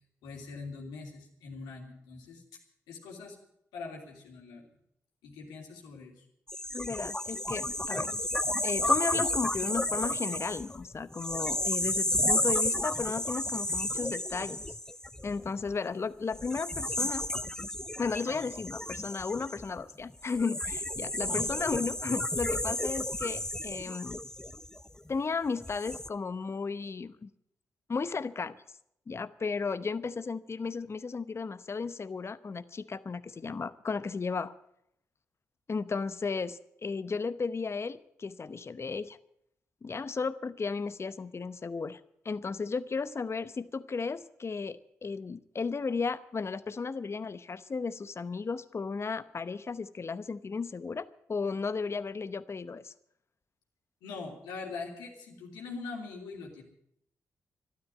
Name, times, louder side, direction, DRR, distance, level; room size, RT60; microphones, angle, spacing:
voice 1, 0.2-2.4 2.9-3.4 3.7-4.7 5.2-6.2 21.2-21.5 54.0-56.6, left 4 dB, 80° left, 0 dB, 3.0 m, -42 dB
sound 1, 6.5-15.7 16.3-25.1 25.6-26.1, left 1 dB, 10° left, 0.7 m, -32 dB
voice 2, 6.7-8.1 8.6-14.6 15.2-17.2 18.0-24.2 25.1-27.3 27.9-28.6 29.1-34.5 35.7-39.2 39.8-42.0 42.2-52.9, left 4 dB, 40° left, 14 dB, 0.9 m, -34 dB
12.5 x 12.5 x 8.9 m, 0.74 s
hypercardioid pair, 40°, 7 cm